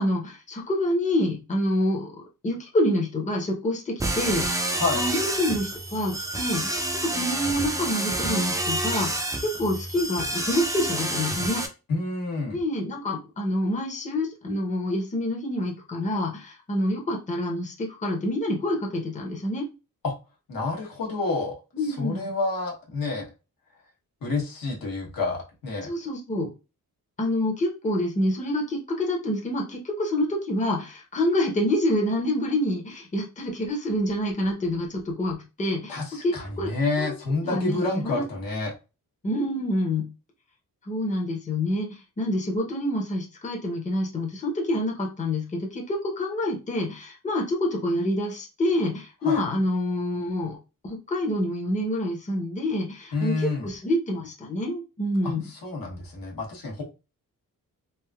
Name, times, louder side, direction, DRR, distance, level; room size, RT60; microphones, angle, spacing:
voice 1, 0.0-2.1 2.4-11.6 12.5-19.7 21.7-22.3 25.8-26.5 27.2-36.7 37.0-37.1 37.4-38.2 39.2-40.1 40.8-50.6 50.8-55.4, left 1 dB, 20° left, 0 dB, 0.7 m, -27 dB
sound 1, 4.0-11.7, right 1 dB, 10° right, 0.4 m, -28 dB
voice 2, 11.9-12.6 20.0-20.1 20.5-21.6 21.8-23.3 24.2-25.9 35.9-38.7 49.2-49.4 53.1-53.7 55.2-56.8, left 3 dB, 75° left, -1 dB, 1.1 m, -29 dB
3.4 x 2.5 x 2.3 m, 0.29 s
wide cardioid pair, 115°, 35 cm